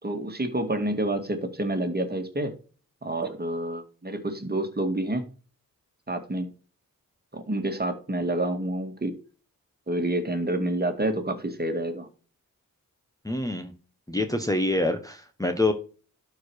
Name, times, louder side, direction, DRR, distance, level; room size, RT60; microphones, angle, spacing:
voice 1, 0.0-2.5 3.0-5.2 6.1-6.5 7.3-9.1 9.9-12.1, right 1 dB, 25° right, 6 dB, 2.0 m, -28 dB
voice 2, 13.2-13.7 14.1-15.7, left 2 dB, 10° left, 4 dB, 1.2 m, -26 dB
12.0 x 4.9 x 4.6 m, 0.38 s
wide cardioid pair, 80°, 35 cm